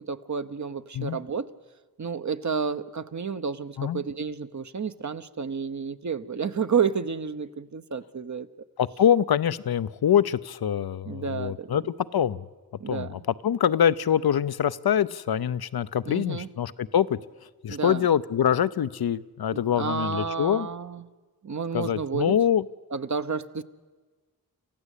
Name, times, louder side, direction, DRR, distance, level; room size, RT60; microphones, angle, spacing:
voice 1, 0.0-1.5 2.0-8.5 11.1-11.7 12.8-13.1 16.1-16.5 17.7-18.0 19.5-21.0 21.4-22.3 22.9-23.6, right 6 dB, 50° right, 11 dB, 0.9 m, -30 dB
voice 2, 8.8-12.4 12.9-17.2 17.6-20.7 21.7-22.6, left 9 dB, 75° left, 16 dB, 0.6 m, -24 dB
28.0 x 15.0 x 8.3 m, 1.4 s
cardioid pair, 40°, 37 cm